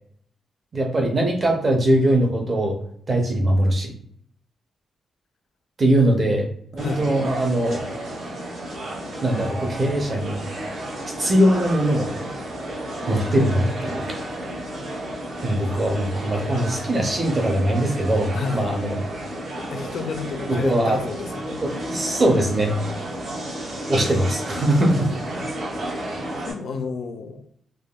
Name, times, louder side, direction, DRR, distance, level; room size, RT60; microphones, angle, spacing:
voice 1, 0.7-2.8 3.1-3.9 5.8-6.5 6.7-7.9 9.2-10.4 11.2-12.1 13.1-14.0 15.4-19.0 20.5-21.0 21.6-22.8 23.9-25.1, right 1 dB, 30° right, 2 dB, 0.5 m, -21 dB
voice 2, 6.8-7.1 15.6-15.9 18.3-18.7 19.7-21.6 24.1-24.2 26.5-27.4, left 5 dB, 55° left, 6 dB, 0.4 m, -31 dB
sound 1, 6.8-26.5, right 1 dB, 60° right, 1.1 m, -32 dB
3.4 x 2.2 x 2.3 m, 0.65 s
wide cardioid pair, 175°, 0 cm